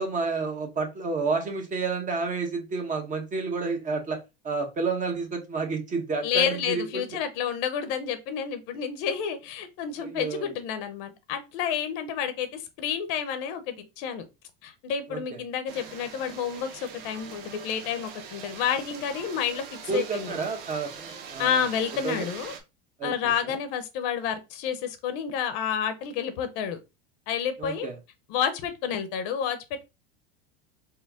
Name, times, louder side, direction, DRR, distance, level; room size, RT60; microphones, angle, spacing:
voice 1, 0.0-4.2 4.4-7.1 10.0-10.5 15.1-15.4 19.9-21.5 22.0-22.3 23.0-23.1 23.4-23.6 27.6-28.0, right 4 dB, 25° right, 1.0 m, -30 dB
voice 2, 6.2-14.2 14.6-19.6 19.9-20.3 21.4-22.5 23.0-26.8 27.3-27.9 28.3-29.6, left 8 dB, 65° left, 0.9 m, -29 dB
sound 1, 15.7-22.6, right 6 dB, 70° right, 1.0 m, -43 dB
4.4 x 2.2 x 3.6 m
supercardioid pair, 125°, 31 cm